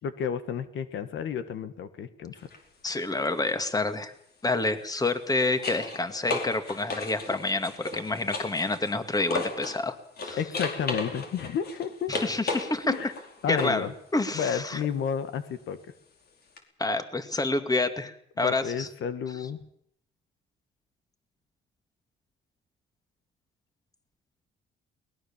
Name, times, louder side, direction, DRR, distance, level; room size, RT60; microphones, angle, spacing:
voice 1, 0.0-2.3 10.4-12.1 12.9-13.1 13.4-13.9 14.3-15.8 18.4-19.6, left 7 dB, 75° left, 11 dB, 1.6 m, -31 dB
sound 1, 2.4-2.6 4.9-9.8 10.2-13.9 16.6-16.7, left 3 dB, 55° left, 4.8 m, -35 dB
voice 2, 2.8-4.1 4.4-10.0 10.2-10.4 12.1-12.9 13.5-14.8 16.8-18.9, left 2 dB, 20° left, 9 dB, 2.4 m, -28 dB
23.0 x 19.5 x 7.4 m, 0.69 s
cardioid pair, 90°, 20 cm